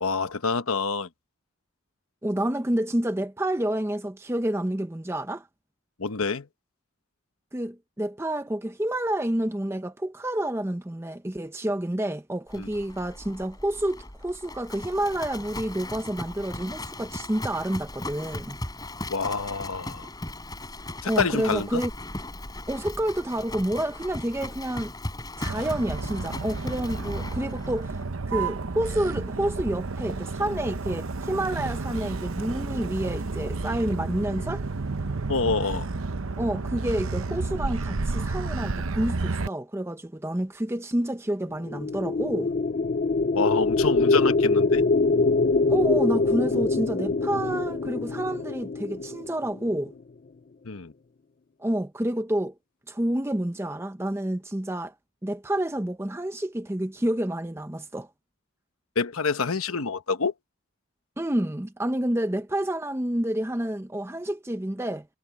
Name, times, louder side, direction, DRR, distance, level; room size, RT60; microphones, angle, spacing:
voice 1, 0.0-1.1 6.0-6.5 12.6-12.7 19.1-20.1 21.0-21.8 35.3-35.9 43.3-44.8 50.7-50.9 59.0-60.3, left 4 dB, 85° left, 1.1 m, -27 dB
voice 2, 2.2-5.5 7.5-18.6 21.0-21.9 22.7-24.9 25.4-28.0 28.3-34.6 36.4-42.5 45.7-49.9 51.6-52.5 52.9-54.9 55.2-58.1 61.2-65.1, right 1 dB, 10° right, 0.6 m, -29 dB
Livestock farm animals working animals, 12.5-28.0, left 1 dB, 20° left, 5.6 m, -38 dB
Motor vehicle (road), 25.5-39.5, right 3 dB, 80° right, 0.8 m, -31 dB
sound 1, 41.7-49.8, left 3 dB, 40° left, 0.4 m, -24 dB
head